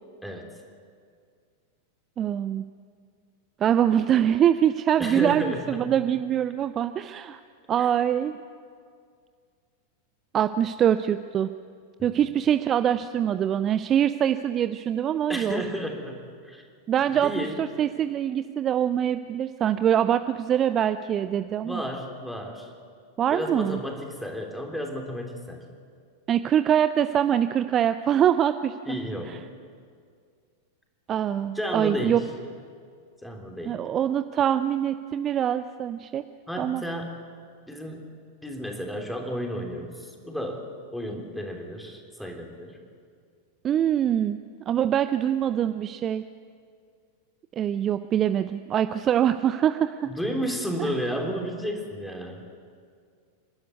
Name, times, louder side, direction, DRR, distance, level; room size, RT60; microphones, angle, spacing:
voice 1, 2.2-2.6 3.6-7.4 7.7-8.3 10.3-11.5 12.0-15.6 16.9-21.8 23.2-23.8 26.3-28.8 29.3-29.4 31.1-32.2 33.7-36.2 36.6-36.8 43.6-44.4 44.7-46.2 47.5-50.1 50.8-50.9, right 9 dB, 30° right, 11 dB, 0.5 m, -24 dB
voice 2, 5.0-5.9 7.8-7.9 15.3-16.6 17.0-17.6 21.6-22.7 23.3-25.6 28.9-29.3 31.5-32.2 33.2-33.8 36.5-37.1 37.7-38.0 38.4-42.8 50.1-52.4, equal, ahead, 2 dB, 3.4 m, -32 dB
28.0 x 12.5 x 9.5 m, 2.1 s
figure-of-eight pair, 90°, 0 cm